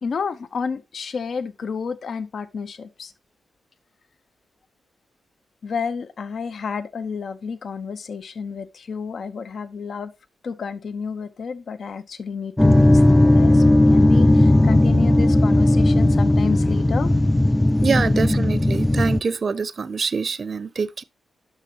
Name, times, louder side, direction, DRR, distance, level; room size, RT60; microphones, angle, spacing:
voice 1, 0.0-3.1 5.6-10.1 10.4-17.1, left 5 dB, 65° left, 0.6 m, -30 dB
sound 1, 12.6-19.2, left 1 dB, 10° left, 0.4 m, -16 dB
voice 2, 17.8-21.0, right 5 dB, 55° right, 0.5 m, -25 dB
8.8 x 6.0 x 2.8 m
cardioid pair, 50°, 0 cm